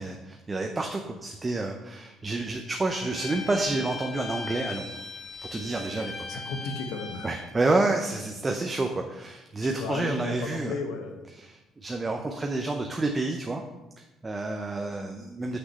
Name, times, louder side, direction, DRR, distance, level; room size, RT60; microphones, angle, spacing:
voice 1, 0.0-5.0 5.5-6.4 7.2-10.7 11.4-13.6 14.0-15.6, right 2 dB, 20° right, 3 dB, 0.6 m, -29 dB
Bowed string instrument, 2.9-7.5, left 4 dB, 45° left, 2.3 m, -39 dB
voice 2, 6.3-7.3 9.6-11.2, left 4 dB, 90° left, 5 dB, 1.0 m, -34 dB
6.1 x 6.0 x 5.4 m, 1.0 s
cardioid pair, 125°, 0 cm